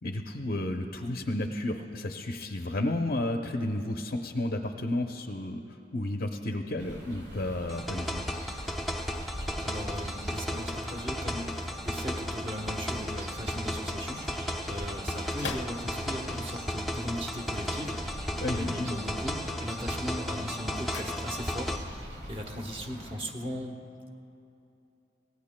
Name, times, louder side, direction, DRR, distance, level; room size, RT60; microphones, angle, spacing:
voice 1, 0.0-8.2 18.4-19.0, left 1 dB, 50° left, 3 dB, 0.6 m, -32 dB
sound 1, 6.8-23.2, equal, 75° right, 3.1 m, -44 dB
sound 2, 7.7-21.8, left 1 dB, ahead, 0.6 m, -35 dB
voice 2, 9.6-23.8, equal, 30° right, 3 dB, 1.1 m, -38 dB
sound 3, 11.4-16.4 17.4-18.5 18.8-19.3 19.7-21.8 22.0-22.1, left 4 dB, 90° left, 0.7 m, -47 dB
24.0 x 18.5 x 2.2 m, 2.8 s
head